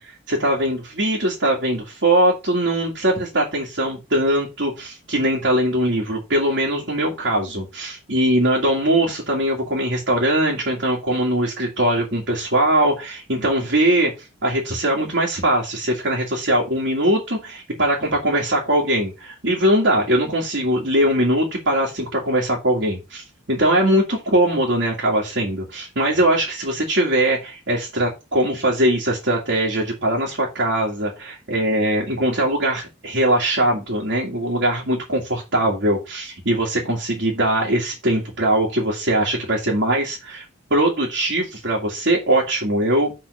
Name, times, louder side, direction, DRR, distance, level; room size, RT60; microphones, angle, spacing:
voice 1, 0.3-14.1 14.4-40.4 40.7-43.1, right 1 dB, 60° right, -3 dB, 2.1 m, -21 dB
6.4 x 4.1 x 5.4 m, 0.26 s
head